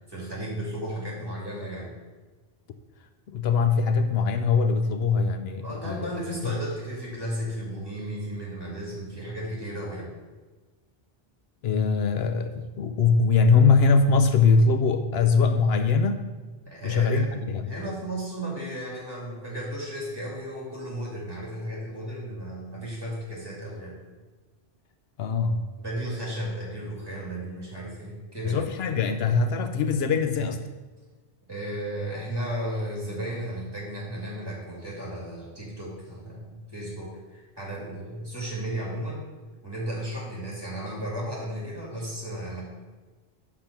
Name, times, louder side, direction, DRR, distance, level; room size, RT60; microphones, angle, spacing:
voice 1, 0.1-1.9 5.6-10.1 16.7-17.3 17.6-24.0 25.8-28.7 31.5-39.2 39.6-42.6, right 1 dB, 20° right, -5 dB, 2.6 m, -34 dB
voice 2, 3.3-6.1 6.4-6.6 11.6-16.2 16.8-17.7 25.2-25.8 28.4-30.7, left 4 dB, 75° left, 8 dB, 0.8 m, -22 dB
5.8 x 5.1 x 6.7 m, 1.3 s
omnidirectional pair, 1.1 m